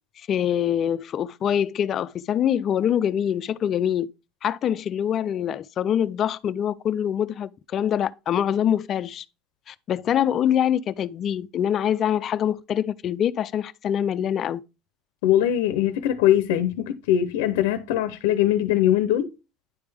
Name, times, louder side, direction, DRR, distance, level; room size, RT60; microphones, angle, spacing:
voice 1, 0.2-4.1 4.4-9.2 9.7-14.6, left 9 dB, 35° left, 0.3 m, -24 dB
voice 2, 15.2-19.3, left 12 dB, 85° left, 0.5 m, -21 dB
10.0 x 3.5 x 3.3 m
cardioid pair, 150°, 0 cm